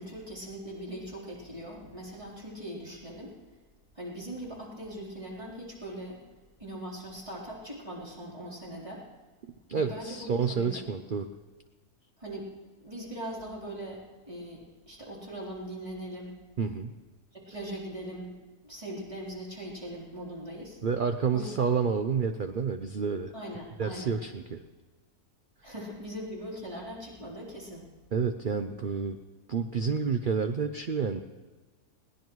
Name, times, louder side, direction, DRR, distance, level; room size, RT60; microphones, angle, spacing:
voice 1, 0.0-3.3 3.9-6.2 6.6-9.0 9.8-10.9 12.2-12.5 12.8-16.3 17.5-18.4 18.6-20.8 21.3-21.7 23.3-24.1 25.6-27.9, right 1 dB, 20° right, -5 dB, 3.8 m, -40 dB
voice 2, 9.7-11.3 16.6-16.9 20.8-23.3 23.8-24.6 28.1-29.2 29.5-31.2, right 6 dB, 55° right, 7 dB, 0.5 m, -29 dB
21.0 x 17.5 x 3.1 m, 1.3 s
omnidirectional pair, 1.6 m